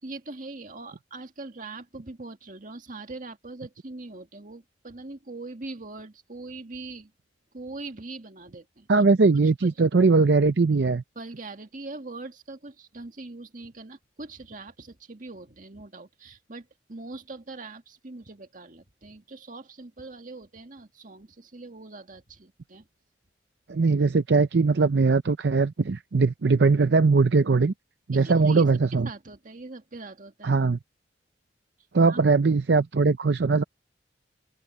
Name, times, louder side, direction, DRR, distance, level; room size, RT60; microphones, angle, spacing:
voice 1, 0.0-7.1 7.5-8.9 9.6-9.7 11.2-22.9 28.1-28.7 29.0-30.6 32.1-32.2, right 2 dB, 50° right, 1.9 m, -41 dB
voice 2, 8.9-11.0 23.7-27.7 28.1-29.1 30.4-30.8 31.9-33.6, right 4 dB, 70° right, 0.6 m, -20 dB
open air
head